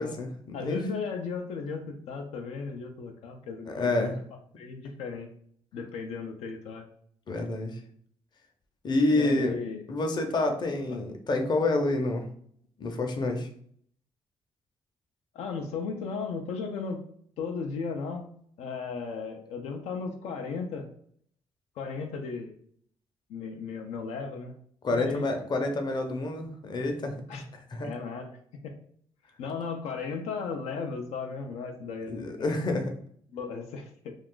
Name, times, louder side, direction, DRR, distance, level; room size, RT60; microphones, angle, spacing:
voice 1, 0.0-0.9 3.7-4.2 7.3-7.8 8.8-9.6 9.9-12.3 12.8-13.5 24.8-27.4 27.7-27.9 32.1-32.9, left 2 dB, 45° left, 4 dB, 0.6 m, -28 dB
voice 2, 0.5-4.2 4.6-5.3 5.7-6.8 9.1-9.8 10.9-11.0 15.3-17.1 17.4-18.3 18.6-20.9 21.8-22.5 23.3-24.5 24.9-25.3 27.3-27.4 27.8-28.3 28.6-28.7 29.4-32.6 33.3-34.2, left 5 dB, 90° left, 3 dB, 0.4 m, -35 dB
2.4 x 2.4 x 3.6 m, 0.63 s
cardioid pair, 80°, 11 cm